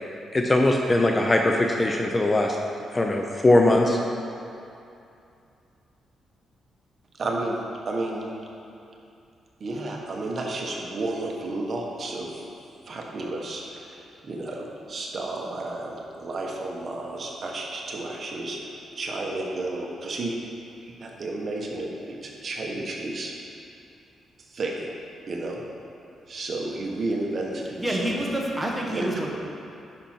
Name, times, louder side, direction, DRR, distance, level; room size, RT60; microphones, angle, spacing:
voice 1, 0.3-2.6 2.9-4.0, left 1 dB, 20° left, 1 dB, 0.6 m, -20 dB
voice 2, 7.2-8.3 9.6-12.4 12.9-20.4 20.8-23.3 24.5-24.9 25.3-25.6 26.3-28.0 28.9-29.1, right 2 dB, 45° right, -1 dB, 1.2 m, -32 dB
voice 3, 27.8-29.3, right 1 dB, 5° right, -3 dB, 1.3 m, -27 dB
10.5 x 5.9 x 4.4 m, 2.6 s
cardioid pair, 125°, 0 cm